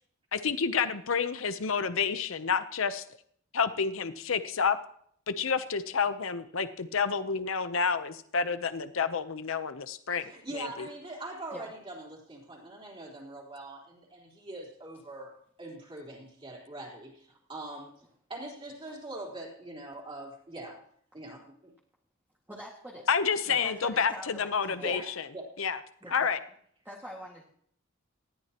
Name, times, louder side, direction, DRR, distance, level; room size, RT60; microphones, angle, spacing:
voice 1, 0.3-3.0 3.5-4.8 5.3-10.9 23.1-25.3 25.6-25.8 26.1-26.4, left 6 dB, 75° left, 11 dB, 0.8 m, -29 dB
voice 2, 10.2-17.9 18.3-20.8 21.1-21.7 24.8-25.1 25.3-25.4 26.0-26.1, right 2 dB, 25° right, -2 dB, 3.9 m, -42 dB
voice 3, 22.5-23.0 23.5-25.0 26.0-26.3 26.8-27.4, equal, 10° right, -4 dB, 2.0 m, -44 dB
19.5 x 14.0 x 3.0 m, 0.64 s
head